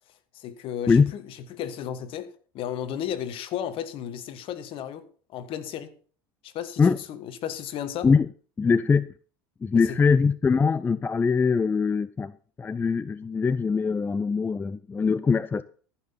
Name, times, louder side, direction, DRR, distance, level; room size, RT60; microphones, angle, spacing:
voice 1, 0.3-5.0 5.3-5.9 6.4-8.1 9.7-10.0, left 9 dB, 50° left, 1.5 m, -34 dB
voice 2, 8.6-9.1 9.6-12.3 12.6-15.6, left 5 dB, 15° left, 0.4 m, -22 dB
14.0 x 6.0 x 5.7 m
hypercardioid pair, 85°, 12 cm